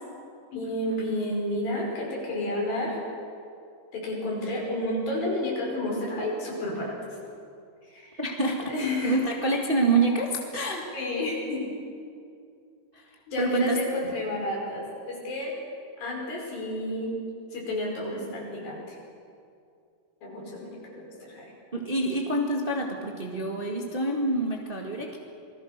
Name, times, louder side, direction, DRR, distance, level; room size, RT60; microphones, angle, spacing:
voice 1, 0.5-3.0 3.9-7.0 7.8-8.2 8.6-9.2 10.9-11.7 13.3-15.6 16.0-17.2 17.5-19.0 20.2-21.5, left 1 dB, 85° left, -2 dB, 7.1 m, -31 dB
voice 2, 8.2-8.7 9.0-11.0 12.9-13.8 14.0-14.1 21.7-25.2, right 2 dB, 20° right, 0 dB, 1.5 m, -27 dB
27.5 x 20.5 x 6.7 m, 2.4 s
omnidirectional pair, 4.0 m